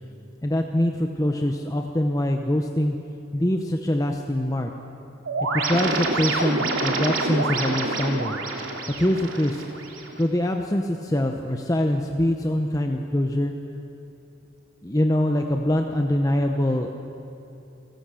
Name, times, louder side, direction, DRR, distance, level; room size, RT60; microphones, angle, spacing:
voice 1, 0.4-2.9 3.3-4.7 5.5-8.4 9.0-9.6 10.2-13.5 14.8-16.9, left 1 dB, 15° left, 3 dB, 0.8 m, -24 dB
sound 1, 5.3-10.2, right 3 dB, 80° right, 2.9 m, -27 dB
28.5 x 15.5 x 7.7 m, 2.7 s
head